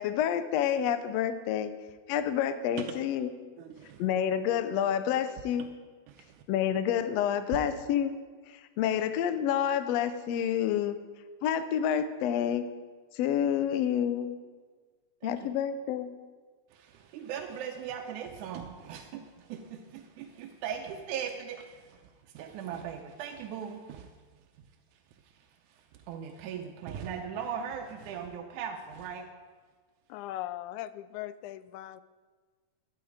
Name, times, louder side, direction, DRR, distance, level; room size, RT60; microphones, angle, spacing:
voice 1, 0.0-1.7 2.1-3.3 4.0-5.7 6.5-8.1 8.5-11.0 11.4-12.7 13.1-14.4 15.2-16.1, left 9 dB, 70° left, 10 dB, 1.7 m, -28 dB
voice 2, 3.6-4.0 6.1-6.4 7.5-7.6 15.2-15.4 16.7-22.0 22.3-24.1 26.1-29.3, right 8 dB, 90° right, 4 dB, 2.2 m, -39 dB
voice 3, 30.1-32.0, left 14 dB, 90° left, 15 dB, 2.0 m, -39 dB
11.5 x 11.5 x 5.0 m, 1.4 s
omnidirectional pair, 3.4 m